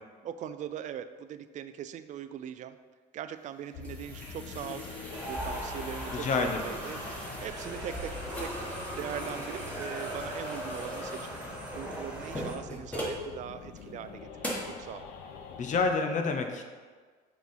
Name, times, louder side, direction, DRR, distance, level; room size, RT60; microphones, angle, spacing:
voice 1, 0.2-2.8 3.1-4.9 5.3-7.0 7.4-8.6 9.0-11.3 11.7-15.1, right 9 dB, 45° right, 11 dB, 0.4 m, -40 dB
sound 1, 3.4-13.3 13.8-13.9 14.4-14.8, equal, 10° left, 1.6 m, -41 dB
sound 2, 3.7-16.0, left 6 dB, 90° left, 0.7 m, -46 dB
sound 3, 5.1-12.6, right 1 dB, 10° right, 1.7 m, -39 dB
voice 2, 6.1-6.6 15.6-16.6, left 4 dB, 45° left, 5 dB, 0.9 m, -28 dB
6.0 x 4.5 x 5.6 m, 1.5 s
cardioid pair, 110°, 17 cm